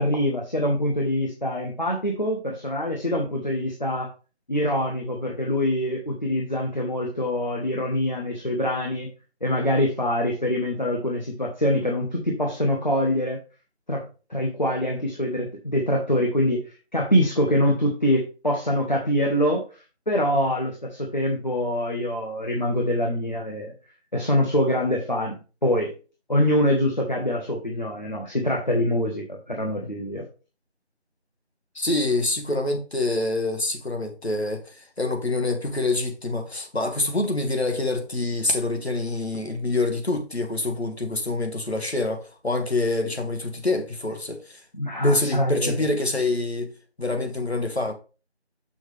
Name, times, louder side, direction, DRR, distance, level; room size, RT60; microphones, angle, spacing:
voice 1, 0.0-4.1 4.5-9.1 9.4-13.4 13.9-16.6 16.9-19.6 20.1-23.7 24.1-25.9 26.3-30.2 44.7-45.8, equal, 40° left, 1.3 m, -24 dB
voice 2, 31.8-44.6 45.0-46.7 47.0-47.9, left 2 dB, 70° left, 1.9 m, -26 dB
6.6 x 6.2 x 3.4 m
figure-of-eight pair, 175°, 34 cm